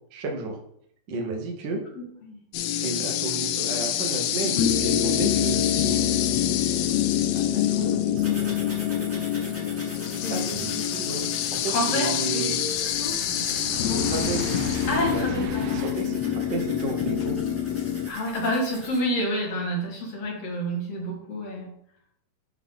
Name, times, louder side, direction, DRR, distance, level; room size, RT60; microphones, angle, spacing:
voice 1, 0.1-0.6 1.1-1.8 2.8-6.4 7.3-8.6 10.3-12.6 13.9-14.5 15.0-17.4, right 3 dB, 55° right, 2 dB, 1.3 m, -33 dB
voice 2, 1.9-2.4 4.5-4.7 10.2-10.6 11.7-13.3 13.9-14.1 14.9-16.2 18.1-21.7, equal, 60° left, -2 dB, 2.7 m, -29 dB
sound 1, 2.5-18.1, left 10 dB, 80° left, 1.4 m, -26 dB
sound 2, 8.2-19.0, equal, 5° right, 1.1 m, -43 dB
sound 3, 8.9-15.9, right 7 dB, 80° right, 2.1 m, -38 dB
11.0 x 3.8 x 3.7 m, 0.69 s
omnidirectional pair, 3.4 m